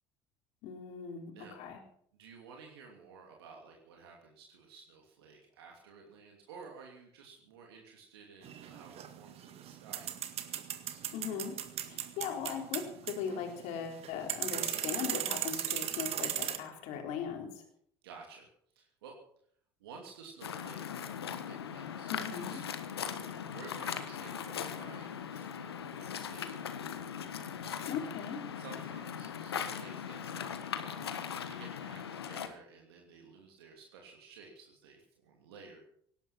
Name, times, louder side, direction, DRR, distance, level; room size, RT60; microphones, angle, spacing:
voice 1, 0.6-1.8 11.1-11.6 11.8-17.6 22.1-22.6 27.9-28.4, left 7 dB, 65° left, 3 dB, 3.7 m, -39 dB
voice 2, 2.1-10.1 10.4-11.0 18.0-18.5 18.7-19.2 19.8-22.1 22.5-26.9 27.6-27.8 28.5-31.1 31.4-35.8, right 5 dB, 80° right, 1 dB, 2.9 m, -53 dB
sound 1, 8.4-16.6, right 10 dB, 50° right, 1.9 m, -37 dB
Waves surf, 20.4-32.5, left 8 dB, 85° left, 1.3 m, -39 dB
18.0 x 11.5 x 6.0 m, 0.63 s
hypercardioid pair, 65°, 13 cm